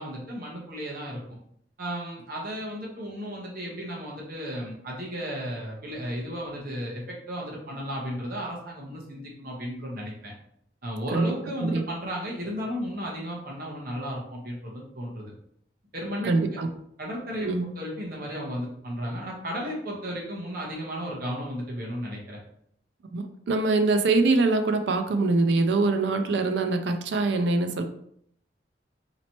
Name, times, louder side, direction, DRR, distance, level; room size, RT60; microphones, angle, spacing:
voice 1, 0.0-1.4 1.8-10.3 10.8-15.3 15.9-16.6 17.0-17.5 17.7-22.4, equal, 55° right, -2 dB, 1.0 m, -34 dB
voice 2, 16.2-16.7 17.4-17.7 23.1-27.8, right 3 dB, 75° right, 7 dB, 0.4 m, -23 dB
4.1 x 2.9 x 2.9 m, 0.69 s
head